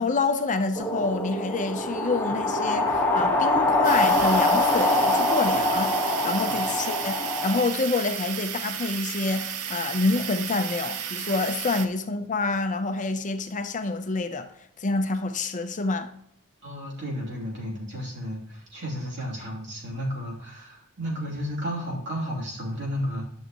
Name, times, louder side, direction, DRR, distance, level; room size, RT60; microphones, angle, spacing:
voice 1, 0.0-5.9 6.2-7.2 7.4-14.5 14.8-16.1, left 3 dB, 35° left, 0.6 m, -27 dB
sound 1, 0.8-7.6, left 2 dB, 10° left, 1.4 m, -24 dB
sound 2, 3.8-11.9, right 8 dB, 80° right, 0.7 m, -33 dB
voice 2, 16.6-23.2, equal, 55° right, 2.9 m, -33 dB
10.5 x 6.5 x 3.0 m
head